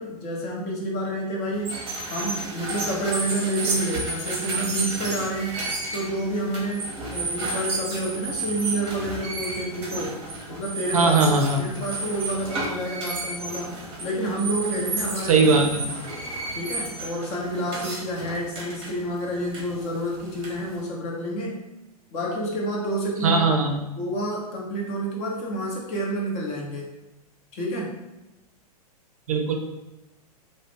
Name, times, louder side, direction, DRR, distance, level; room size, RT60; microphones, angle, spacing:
voice 1, 0.0-1.8 2.1-5.6 5.9-10.2 10.5-13.7 14.0-15.4 16.5-21.6 22.1-23.5 24.0-26.9 27.5-28.0, right 1 dB, 30° left, -2 dB, 0.7 m, -29 dB
sound 1, 1.6-20.8, right 2 dB, 25° right, 0.7 m, -32 dB
voice 2, 10.9-11.6 15.2-15.8 23.2-23.8 29.3-29.5, right 3 dB, 60° right, 2 dB, 0.5 m, -19 dB
2.3 x 2.0 x 3.4 m, 0.99 s
figure-of-eight pair, 100°, 20 cm